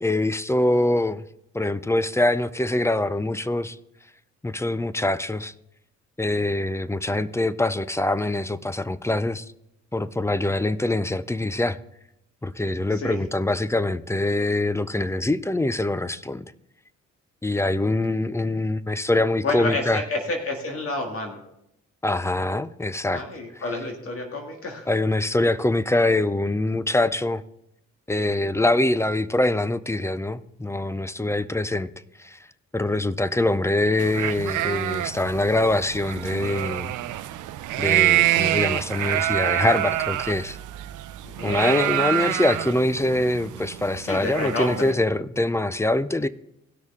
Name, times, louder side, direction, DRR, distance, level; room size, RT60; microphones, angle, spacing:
voice 1, 0.0-1.2 1.5-3.8 4.4-5.5 6.2-9.5 9.9-11.8 12.4-16.5 17.4-20.0 22.0-23.2 24.9-27.4 28.1-31.9 32.2-32.4 32.7-36.9 37.8-40.6 41.4-46.3, left 2 dB, 10° left, 0.4 m, -24 dB
voice 2, 19.4-21.4 23.1-24.9 31.5-31.6 41.2-41.6 44.0-45.0, left 2 dB, 50° left, 1.9 m, -29 dB
sound 1, 34.0-44.9, right 14 dB, 80° right, 0.6 m, -26 dB
17.5 x 6.3 x 3.6 m
cardioid pair, 90°, 30 cm